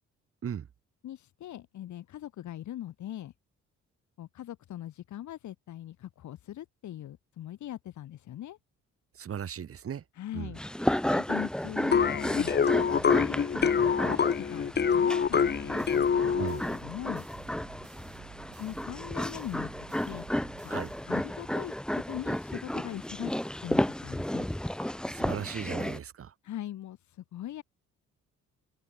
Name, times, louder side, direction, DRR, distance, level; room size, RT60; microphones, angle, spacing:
voice 1, 1.0-3.3 4.2-8.6 10.1-12.5 12.9-17.3 18.6-19.7 20.1-20.7 21.1-24.5 26.4-27.6, left 12 dB, 70° left, 2.1 m, -41 dB
voice 2, 9.1-10.0 10.3-10.5 16.3-16.7 20.7-20.9 25.1-26.3, right 8 dB, 50° right, 1.7 m, -37 dB
sound 1, 10.6-26.0, left 1 dB, 5° left, 0.6 m, -33 dB
sound 2, 11.9-16.7, left 6 dB, 35° left, 1.1 m, -25 dB
sound 3, 15.4-21.5, right 14 dB, 80° right, 3.5 m, -52 dB
cardioid pair, 90°, 30 cm